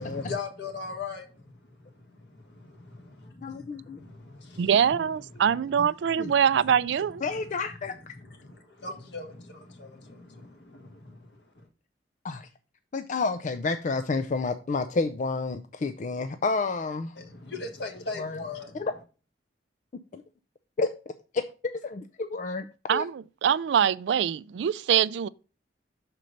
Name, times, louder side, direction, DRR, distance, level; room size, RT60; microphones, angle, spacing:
voice 1, 0.0-3.3 3.9-4.9 5.2-5.5 5.7-5.9 6.4-6.7 7.1-7.5 8.1-11.7 17.1-18.9, left 3 dB, 70° left, 1.6 m, -40 dB
voice 2, 3.4-4.0 6.2-6.3 7.2-8.1 12.2-12.5 12.9-17.1 18.2-18.4 18.7-18.9 20.1-20.2 20.8-20.9 21.6-23.0, left 3 dB, 45° left, 0.4 m, -30 dB
voice 3, 4.6-7.2 22.9-25.3, right 8 dB, 75° right, 0.3 m, -24 dB
6.3 x 4.4 x 5.2 m
head